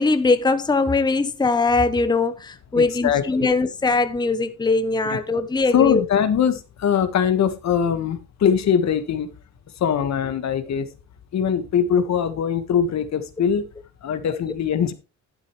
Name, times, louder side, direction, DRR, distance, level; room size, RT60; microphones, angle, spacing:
voice 1, 0.0-6.0, left 3 dB, 15° left, 0.9 m, -21 dB
voice 2, 2.7-3.5 5.0-5.2 5.7-9.3 9.8-10.9 11.3-13.7 14.0-14.9, left 8 dB, 65° left, 1.6 m, -22 dB
11.5 x 9.6 x 3.2 m
cardioid pair, 90°, 30 cm